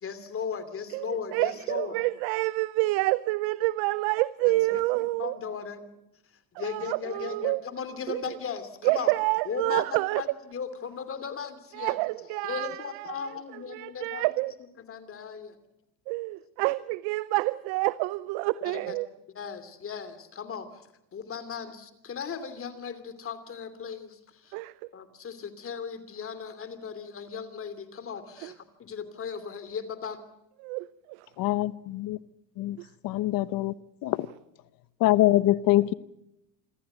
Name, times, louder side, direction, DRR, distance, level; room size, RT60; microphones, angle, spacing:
voice 1, 0.0-2.0 4.4-4.8 5.1-5.9 6.6-9.1 9.4-12.0 12.3-14.3 14.9-15.6 18.6-19.0 19.3-24.6 24.9-30.2, left 6 dB, 35° left, 2.9 m, -37 dB
voice 2, 0.9-5.4 6.6-7.6 8.1-8.4 8.8-10.2 11.7-14.5 16.1-19.1 24.5-24.9 28.4-28.5 30.6-31.3 32.8-32.9, right 21 dB, 80° right, 0.7 m, -28 dB
voice 3, 31.4-32.2 32.6-32.8 33.0-33.7 34.0-34.3 35.0-35.9, left 15 dB, 60° left, 1.1 m, -24 dB
27.0 x 14.0 x 9.1 m
supercardioid pair, 110°, 39 cm